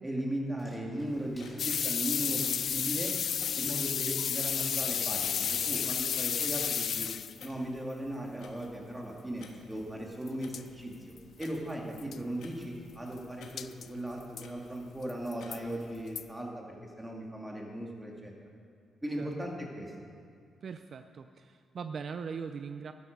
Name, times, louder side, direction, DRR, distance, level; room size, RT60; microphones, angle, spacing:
voice 1, 0.0-3.1 3.6-7.1 7.4-10.9 11.4-18.3 19.0-19.9, right 1 dB, 10° right, -1 dB, 2.3 m, -37 dB
Water / Splash splatter, 0.6-6.4, left 1 dB, 15° left, 3.6 m, -59 dB
Clock, 1.1-16.2, left 4 dB, 85° left, 1.4 m, -57 dB
sound 1, 1.6-7.5 10.3-10.4 10.5-10.6 11.2-11.3 11.4-11.5 12.0-12.2 13.6-13.9 14.4-14.5 15.1-15.6 16.2-16.3, left 8 dB, 65° left, 0.4 m, -31 dB
voice 2, 20.6-22.9, right 6 dB, 55° right, 9 dB, 0.4 m, -40 dB
12.5 x 10.5 x 5.3 m, 2.2 s
cardioid pair, 95°, 0 cm